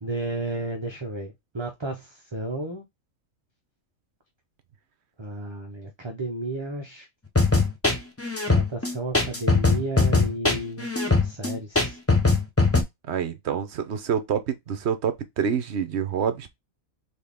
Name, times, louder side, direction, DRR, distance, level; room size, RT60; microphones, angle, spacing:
voice 1, 0.0-2.8 5.2-7.1 8.5-10.9 11.2-12.0, right 2 dB, 25° right, 0.7 m, -32 dB
sound 1, 7.3-12.8, left 3 dB, 15° left, 0.7 m, -21 dB
voice 2, 13.1-16.5, right 7 dB, 60° right, 0.9 m, -27 dB
4.2 x 3.5 x 3.5 m
omnidirectional pair, 1.4 m